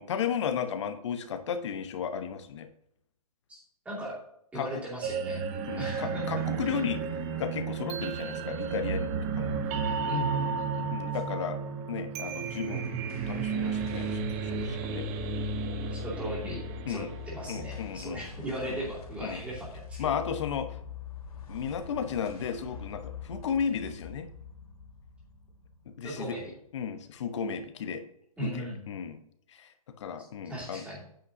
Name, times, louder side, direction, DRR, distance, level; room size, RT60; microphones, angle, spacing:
voice 1, 0.0-2.7 4.5-4.8 5.7-7.0 7.4-9.1 9.4-9.6 10.9-11.6 11.9-12.9 13.3-15.1 16.8-17.1 17.5-18.2 18.7-18.8 19.2-19.4 20.0-20.7 21.5-24.3 25.9-26.4 26.7-28.0 28.4-29.2 29.5-29.7 30.0-30.8, left 7 dB, 50° left, 9 dB, 0.9 m, -34 dB
voice 2, 3.8-4.2 4.5-5.4 5.8-6.3 10.1-10.9 15.9-16.6 16.9-20.2 26.0-26.5 28.4-28.8 30.4-31.0, right 1 dB, 5° right, -5 dB, 2.6 m, -37 dB
sound 1, 5.0-18.0, right 5 dB, 25° right, 0.7 m, -33 dB
sound 2, 12.2-26.8, left 6 dB, 75° left, 2.3 m, -44 dB
8.8 x 8.0 x 2.6 m, 0.73 s
hypercardioid pair, 150°, 19 cm